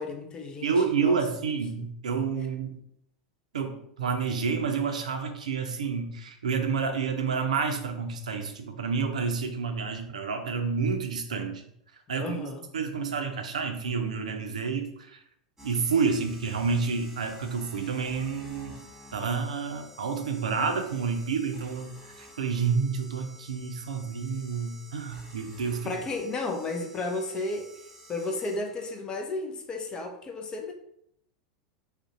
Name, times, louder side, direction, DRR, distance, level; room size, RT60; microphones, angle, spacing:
voice 1, 0.0-1.5 1.8-1.9 12.2-12.7 25.8-27.7 28.1-30.7, left 2 dB, 20° left, 4 dB, 0.4 m, -33 dB
voice 2, 0.6-2.8 3.5-11.6 12.1-12.4 12.7-15.2 15.6-18.8 19.1-25.9, right 5 dB, 70° right, 5 dB, 0.4 m, -29 dB
sound 1, 15.6-29.0, equal, 10° right, 0.9 m, -51 dB
2.5 x 2.1 x 3.8 m, 0.74 s
figure-of-eight pair, 85°, 4 cm